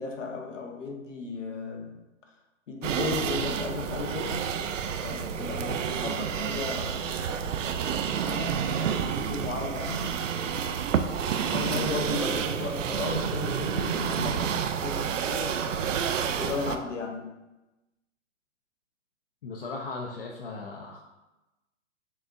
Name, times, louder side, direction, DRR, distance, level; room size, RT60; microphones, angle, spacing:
voice 1, 0.0-2.0 2.7-4.5 5.0-7.6 8.2-10.1 11.5-17.3, left 4 dB, 75° left, 0.9 m, -35 dB
sound 1, 2.8-16.8, right 7 dB, 80° right, 0.5 m, -29 dB
voice 2, 19.4-21.0, left 3 dB, 50° left, 0.6 m, -37 dB
6.5 x 2.5 x 2.6 m
hypercardioid pair, 140°, 37 cm